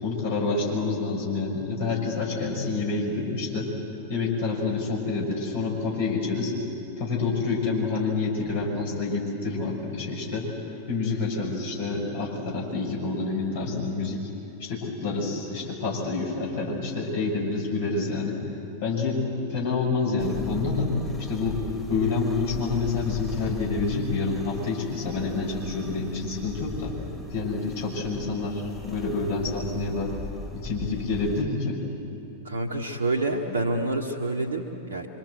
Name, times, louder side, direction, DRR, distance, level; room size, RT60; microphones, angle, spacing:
voice 1, 0.0-3.7 4.1-6.5 7.0-10.5 10.9-14.2 14.6-18.4 18.8-19.2 19.5-20.9 21.2-21.6 21.9-27.0 27.3-30.1 30.5-31.8, left 3 dB, 55° left, -1 dB, 5.9 m, -28 dB
sound 1, 20.2-31.4, left 2 dB, 5° left, 2.7 m, -39 dB
voice 2, 32.4-35.1, right 2 dB, 70° right, -1 dB, 1.5 m, -28 dB
25.5 x 25.0 x 7.9 m, 2.7 s
figure-of-eight pair, 90°, 0 cm